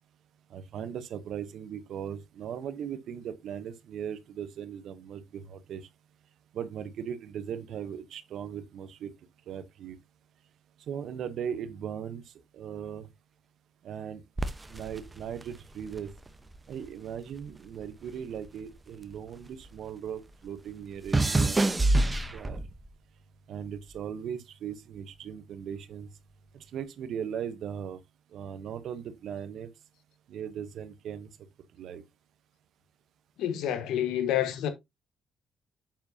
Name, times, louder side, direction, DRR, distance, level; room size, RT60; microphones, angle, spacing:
voice 1, 0.5-5.8 6.5-9.1 9.5-10.0 10.9-12.2 12.5-13.1 13.8-14.2 14.7-16.1 16.7-21.6 22.3-22.6 23.5-26.1 26.7-28.0 28.3-29.7 30.3-31.3 31.8-32.0, right 8 dB, 70° right, 0.9 m, -38 dB
sound 1, 14.4-16.9 17.1-19.8 20.1-22.9 23.6-24.0, right 2 dB, 20° right, 1.0 m, -29 dB
voice 2, 33.4-34.7, left 11 dB, 90° left, 1.3 m, -28 dB
7.3 x 7.3 x 2.8 m
cardioid pair, 90°, 0 cm